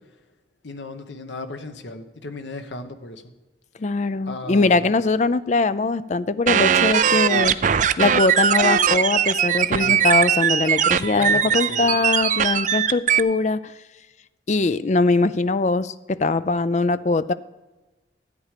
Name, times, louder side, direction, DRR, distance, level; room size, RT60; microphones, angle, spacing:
voice 1, 0.6-3.2 4.3-5.0 9.7-10.0 11.1-12.0, left 2 dB, 75° left, 8 dB, 1.1 m, -35 dB
voice 2, 3.8-7.6 8.0-13.7 14.5-17.3, left 3 dB, 40° left, 15 dB, 0.4 m, -21 dB
sound 1, 6.5-13.2, right 8 dB, 40° right, 0.4 m, -20 dB
13.5 x 8.7 x 5.0 m, 1.1 s
head